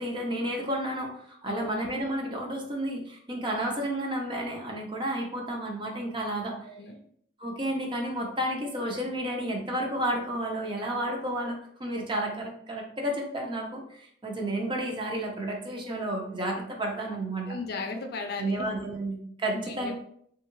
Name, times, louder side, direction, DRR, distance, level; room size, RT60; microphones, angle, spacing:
voice 1, 0.0-6.6 7.4-17.6 18.4-19.9, right 1 dB, 25° right, 1 dB, 0.6 m, -31 dB
voice 2, 6.4-7.0 17.4-18.7 19.5-19.9, left 3 dB, 60° left, 4 dB, 0.5 m, -36 dB
3.5 x 2.3 x 3.0 m, 0.65 s
head